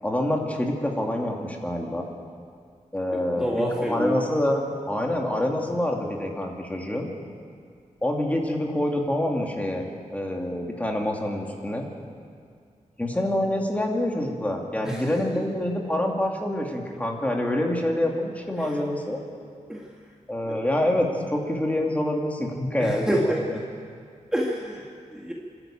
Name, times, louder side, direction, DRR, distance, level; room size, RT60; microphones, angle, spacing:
voice 1, 0.0-2.0 2.9-7.1 8.0-11.9 13.0-19.2 20.3-23.4, left 1 dB, 10° left, 0 dB, 2.6 m, -26 dB
voice 2, 3.3-4.2 14.8-15.0 18.6-18.8 19.7-19.9 20.5-20.6 22.8-23.6 24.3-25.3, equal, 5° right, -3 dB, 2.0 m, -27 dB
27.0 x 13.0 x 8.9 m, 2.2 s
wide cardioid pair, 135°, 13 cm